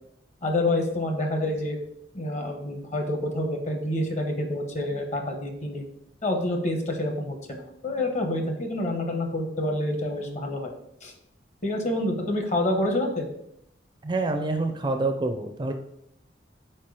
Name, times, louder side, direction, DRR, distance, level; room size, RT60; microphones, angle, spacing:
voice 1, 0.4-1.8 2.1-5.9 6.2-10.7 11.0-11.1 11.6-13.3, left 1 dB, 40° left, 4 dB, 1.0 m, -27 dB
voice 2, 14.0-15.7, right 2 dB, 25° right, 5 dB, 0.4 m, -27 dB
4.5 x 4.4 x 4.7 m, 0.77 s
head